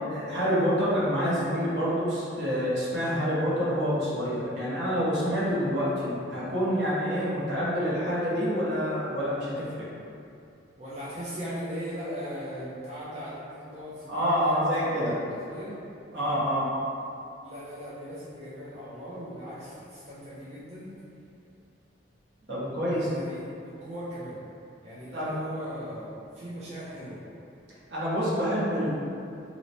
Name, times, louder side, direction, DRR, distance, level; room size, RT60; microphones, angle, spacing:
voice 1, 0.0-9.7 14.1-15.2 16.1-16.7 22.5-23.2 25.1-25.3 27.9-28.9, equal, 65° right, -8 dB, 0.9 m, -27 dB
voice 2, 10.8-14.7 15.0-15.8 17.4-20.9 22.9-24.4 24.8-27.2, equal, 35° right, -10 dB, 0.5 m, -39 dB
3.0 x 2.1 x 3.9 m, 2.6 s
head